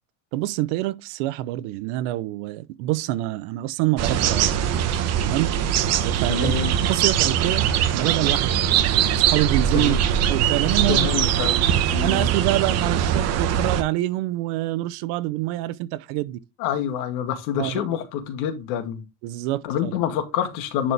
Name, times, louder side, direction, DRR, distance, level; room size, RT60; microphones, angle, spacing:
voice 1, 0.3-4.5 5.2-5.5 6.0-6.5 6.8-10.0 10.3-11.1 12.0-16.4 17.6-17.8 19.2-19.9, right 16 dB, 90° right, 0.9 m, -26 dB
sound 1, 4.0-13.8, right 9 dB, 45° right, 1.0 m, -21 dB
voice 2, 6.3-6.7 9.7-10.0 10.9-11.5 11.9-12.3 16.6-19.0 19.6-20.9, left 9 dB, 80° left, 2.1 m, -27 dB
10.5 x 4.4 x 3.4 m
cardioid pair, 160°, 35 cm